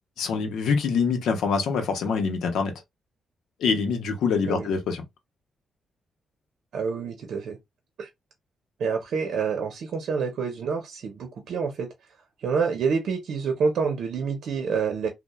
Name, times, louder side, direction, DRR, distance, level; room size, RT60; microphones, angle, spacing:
voice 1, 0.2-2.7 3.6-5.0, left 5 dB, 85° left, 0.7 m, -25 dB
voice 2, 6.7-7.6 8.0-8.1 8.8-11.9 12.4-15.1, right 5 dB, 75° right, 0.6 m, -27 dB
2.9 x 2.1 x 2.2 m
cardioid pair, 75°, 0 cm